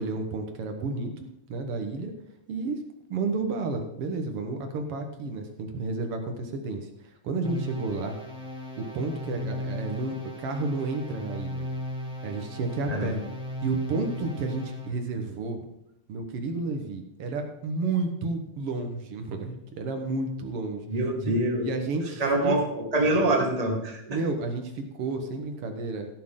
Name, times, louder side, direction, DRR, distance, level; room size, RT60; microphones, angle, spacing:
voice 1, 0.0-2.1 2.5-2.8 3.1-8.2 8.8-11.6 12.2-13.2 13.6-15.6 16.1-20.8 21.6-22.6 24.1-26.1, right 3 dB, 70° right, 5 dB, 1.4 m, -31 dB
sound 1, 7.4-15.0, left 1 dB, 5° right, 0.7 m, -36 dB
voice 2, 20.9-21.7 22.2-22.7 22.9-24.2, right 1 dB, 20° right, 0 dB, 1.1 m, -25 dB
16.5 x 8.4 x 3.8 m, 0.81 s
omnidirectional pair, 4.3 m